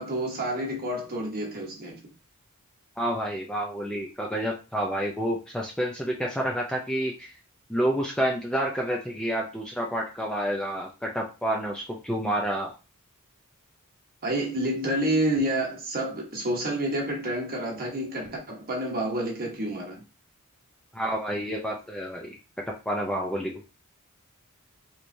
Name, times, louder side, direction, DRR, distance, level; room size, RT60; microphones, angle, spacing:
voice 1, 0.0-2.1 14.2-20.0, right 1 dB, 45° right, 1.1 m, -29 dB
voice 2, 3.0-7.3 7.7-12.7 20.9-22.4 22.9-23.6, equal, 5° left, 0.5 m, -29 dB
3.3 x 3.0 x 2.6 m
head